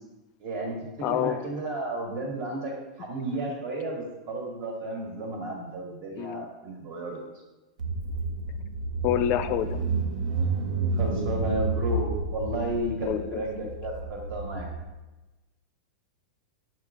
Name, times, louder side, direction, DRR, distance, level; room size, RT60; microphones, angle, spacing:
voice 1, 0.4-0.8 1.1-7.2 10.4-10.5 11.0-14.7, right 1 dB, 45° right, 0 dB, 1.7 m, -33 dB
voice 2, 1.0-1.4 6.2-6.4 9.0-9.8 13.0-13.7, left 11 dB, 45° left, 11 dB, 0.4 m, -27 dB
Car / Engine, 7.8-14.8, right 3 dB, 75° right, 0.7 m, -30 dB
5.5 x 4.8 x 3.7 m, 1.1 s
hypercardioid pair, 115°, 4 cm